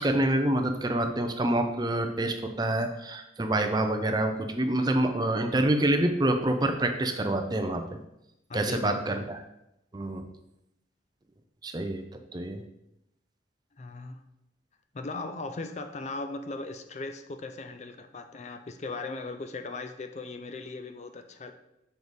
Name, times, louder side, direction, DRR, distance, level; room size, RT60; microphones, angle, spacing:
voice 1, 0.0-7.8 8.5-9.4 9.9-10.2 11.6-12.0 12.3-12.6, right 1 dB, 20° right, 6 dB, 0.5 m, -27 dB
voice 2, 8.5-9.3 13.8-14.2 14.9-21.5, left 3 dB, 35° left, 8 dB, 0.4 m, -38 dB
6.8 x 4.7 x 4.0 m, 0.85 s
head